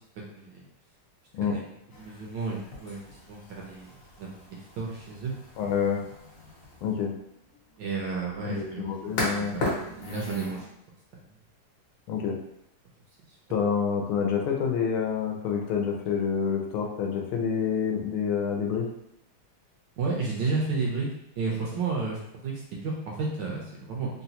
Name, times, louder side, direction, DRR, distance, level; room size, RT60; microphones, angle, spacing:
sound 1, 1.9-10.6, left 2 dB, 60° left, 1.3 m, -38 dB
voice 1, 2.0-3.9 4.2-5.3 7.8-10.7 11.1-11.2 20.0-21.1 21.4-24.1, right 4 dB, 70° right, -3 dB, 1.1 m, -32 dB
voice 2, 5.6-6.0 6.8-7.1 8.4-9.6 12.1-12.4 13.5-18.9, left 7 dB, 80° left, 2 dB, 1.4 m, -27 dB
3.8 x 2.2 x 2.8 m, 0.78 s
omnidirectional pair, 2.3 m